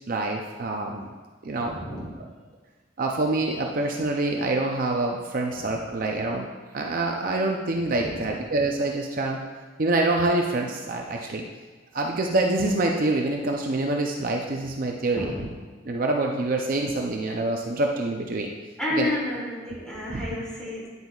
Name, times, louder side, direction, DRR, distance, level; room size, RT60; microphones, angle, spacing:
voice 1, 0.1-1.1 1.4-1.8 2.2-2.3 3.0-9.4 9.8-11.5 11.9-15.4 15.8-18.5 18.9-19.1 20.1-20.2, right 2 dB, 45° right, 1 dB, 0.5 m, -26 dB
voice 2, 1.6-2.2 7.9-8.2 15.1-15.5 18.8-20.9, left 1 dB, 5° left, -8 dB, 2.6 m, -31 dB
9.7 x 8.0 x 2.4 m, 1.4 s
head